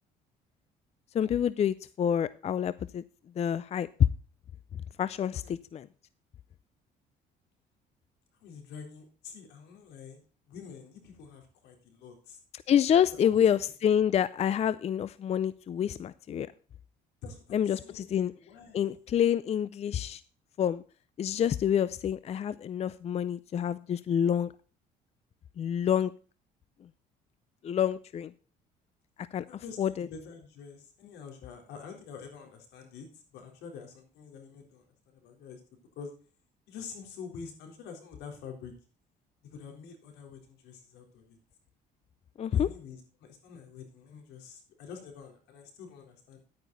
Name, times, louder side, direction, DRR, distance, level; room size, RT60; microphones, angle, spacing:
voice 1, 1.1-3.0 3.4-3.9 5.0-5.9 12.7-16.5 17.5-18.3 18.7-20.2 20.6-20.8 21.2-24.5 25.6-26.1 27.6-28.3 29.3-30.1 42.4-42.7, left 9 dB, 40° left, 17 dB, 0.5 m, -28 dB
voice 2, 8.4-10.2 10.5-12.4 13.2-13.5 17.2-18.1 18.3-18.8 29.5-33.1 33.3-35.6 36.0-36.1 36.7-38.7 39.4-41.4 42.5-46.4, left 6 dB, 85° left, 3 dB, 3.8 m, -46 dB
11.0 x 9.4 x 3.9 m, 0.36 s
cardioid pair, 110°, 17 cm